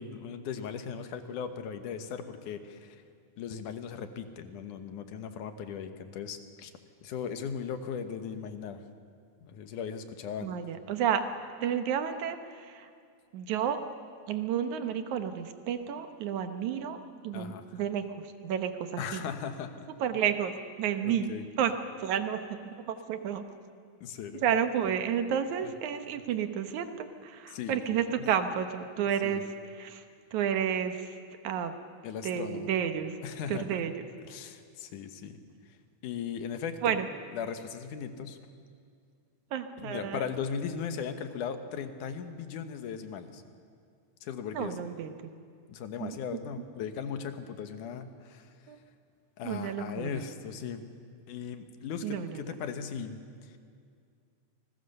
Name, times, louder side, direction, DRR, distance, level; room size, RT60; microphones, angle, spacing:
voice 1, 0.0-3.0 3.4-6.7 7.0-8.8 9.4-10.5 17.3-17.8 19.0-19.9 21.0-21.4 24.0-24.4 27.5-28.3 29.2-29.4 32.0-32.7 33.2-33.8 34.2-35.4 36.0-37.0 37.3-38.4 39.8-43.4 44.2-44.8 45.7-48.5 49.4-50.8 51.3-53.6, left 7 dB, 80° left, 8 dB, 2.8 m, -38 dB
voice 2, 10.4-11.2 11.6-12.9 13.3-13.8 14.3-17.0 17.2-18.0 18.4-19.2 20.0-20.5 20.8-21.3 21.6-21.7 22.0-23.4 24.4-29.4 29.8-30.0 30.3-31.1 31.4-31.7 32.2-33.2 33.5-33.9 36.8-37.1 39.5-40.2 44.6-45.1 46.0-46.2 48.7-48.8 49.4-50.3 52.0-52.4, right 8 dB, 75° right, 8 dB, 2.5 m, -31 dB
28.5 x 20.5 x 6.7 m, 2.3 s
omnidirectional pair, 3.6 m